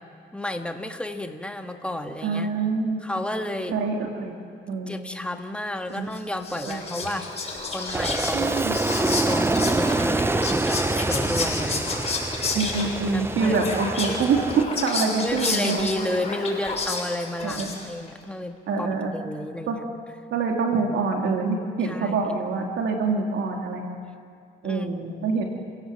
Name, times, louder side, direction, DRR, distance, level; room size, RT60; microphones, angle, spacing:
voice 1, 0.3-2.5 3.0-3.7 4.9-7.3 7.6-8.6 9.0-12.0 13.1-13.6 14.1-14.2 15.1-19.9 21.8-22.2 24.6-24.9, left 1 dB, 5° left, 5 dB, 1.9 m, -32 dB
voice 2, 2.2-3.0 3.7-4.9 6.0-6.1 6.6-7.1 8.3-8.8 12.5-15.9 17.4-17.7 18.7-19.1 19.7-19.8 20.3-23.9 24.6-25.5, right 4 dB, 75° right, 2 dB, 2.9 m, -25 dB
Whispering, 6.1-18.1, left 3 dB, 30° left, 6.8 m, -31 dB
Aircraft, 7.9-14.6, right 2 dB, 10° right, 0.5 m, -26 dB
29.0 x 17.0 x 7.8 m, 2.2 s
cardioid pair, 90°, 20 cm